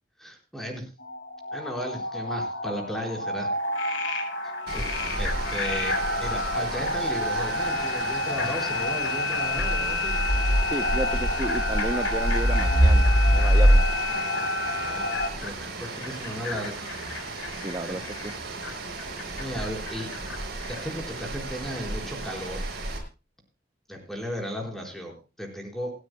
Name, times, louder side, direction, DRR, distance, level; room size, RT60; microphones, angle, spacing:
voice 1, 0.2-0.9 1.5-3.5 4.7-4.8 5.1-10.2 14.4-15.1 15.4-16.8 17.8-18.0 19.1-20.1 20.7-22.6 23.9-25.9, equal, ahead, 1 dB, 4.6 m, -35 dB
sound 1, 1.0-15.3, left 2 dB, 65° left, 2.2 m, -29 dB
Frog, 3.5-21.0, left 5 dB, 85° left, 4.7 m, -39 dB
sound 2, 4.7-23.0, right 1 dB, 55° right, 6.3 m, -27 dB
voice 2, 10.7-14.0 17.6-18.3, right 1 dB, 20° right, 9 dB, 0.7 m, -32 dB
28.0 x 9.8 x 2.3 m, 0.31 s
head